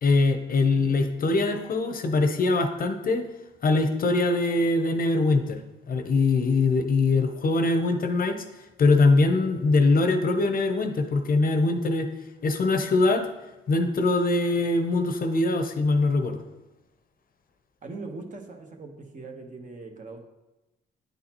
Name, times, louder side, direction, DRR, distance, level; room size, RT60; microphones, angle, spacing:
voice 1, 0.0-3.2 3.6-5.6 5.9-8.4 8.8-12.1 12.4-13.3 13.7-16.4, left 3 dB, 45° left, 7 dB, 0.7 m, -22 dB
voice 2, 17.8-20.2, right 3 dB, 40° right, 3 dB, 1.1 m, -40 dB
9.3 x 4.0 x 2.9 m, 1.0 s
cardioid pair, 80°, 20 cm